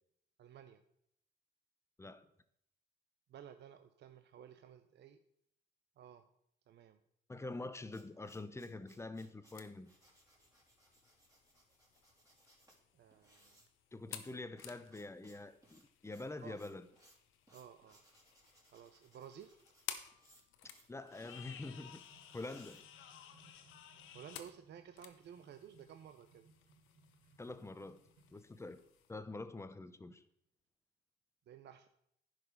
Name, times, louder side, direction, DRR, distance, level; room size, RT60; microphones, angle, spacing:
voice 1, 0.4-0.8 3.3-5.2 6.0-6.3 6.7-7.0 12.9-13.6 16.4-16.6 17.5-18.0 18.7-19.6 24.1-26.5 31.5-31.9, right 9 dB, 60° right, 0.6 m, -55 dB
voice 2, 7.3-9.9 13.9-16.9 20.9-22.0 22.3-22.8 27.4-28.0 28.3-28.8 29.1-30.2, left 2 dB, 15° left, 0.7 m, -46 dB
sound 1, 7.9-23.5, right 1 dB, 15° right, 3.3 m, -68 dB
sound 2, 9.5-29.1, left 10 dB, 90° left, 0.8 m, -55 dB
sound 3, 21.0-28.5, right 2 dB, 85° right, 2.2 m, -68 dB
10.5 x 5.0 x 5.0 m
cardioid pair, 90°, 20 cm